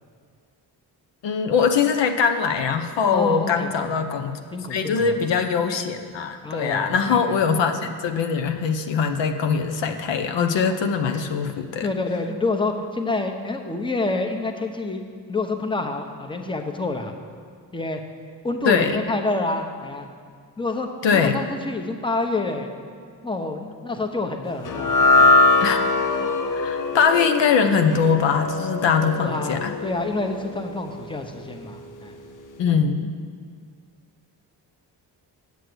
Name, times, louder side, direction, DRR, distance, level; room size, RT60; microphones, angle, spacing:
voice 1, 1.2-4.4 4.7-11.9 18.6-19.0 21.0-21.4 25.6-25.8 26.5-29.7 32.6-33.1, left 6 dB, 80° left, 6 dB, 0.8 m, -22 dB
voice 2, 3.1-3.9 4.5-5.1 6.4-7.4 11.1-11.3 11.8-15.0 15.3-17.1 17.7-18.0 18.4-20.1 20.6-22.7 23.2-24.9 25.2-25.3 29.2-32.1, left 2 dB, 10° left, 4 dB, 0.9 m, -28 dB
sound 1, 24.6-31.1, left 2 dB, 45° left, 0.7 m, -22 dB
8.4 x 6.4 x 7.9 m, 2.1 s
cardioid pair, 85°, 43 cm